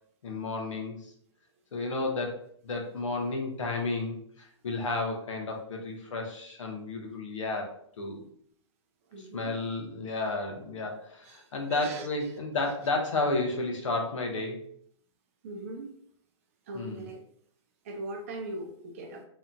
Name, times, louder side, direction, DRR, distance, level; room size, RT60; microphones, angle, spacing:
voice 1, 0.2-1.1 1.7-2.3 2.6-8.3 9.2-14.6 16.7-17.1, left 3 dB, 80° left, 1 dB, 0.8 m, -32 dB
voice 2, 9.1-9.6 11.2-12.1 15.4-15.9 16.7-17.2 17.8-19.2, right 2 dB, 30° right, 3 dB, 0.3 m, -40 dB
2.8 x 2.2 x 2.5 m, 0.65 s
hypercardioid pair, 160°, 16 cm